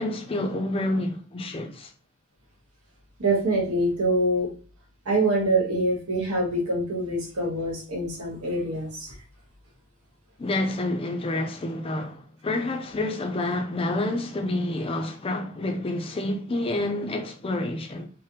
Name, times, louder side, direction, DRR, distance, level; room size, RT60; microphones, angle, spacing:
voice 1, 0.0-1.9 10.4-18.1, left 2 dB, 25° left, 0.4 m, -28 dB
voice 2, 3.2-4.5 5.0-9.1, right 1 dB, 85° right, 1.2 m, -25 dB
3.3 x 2.1 x 2.8 m
head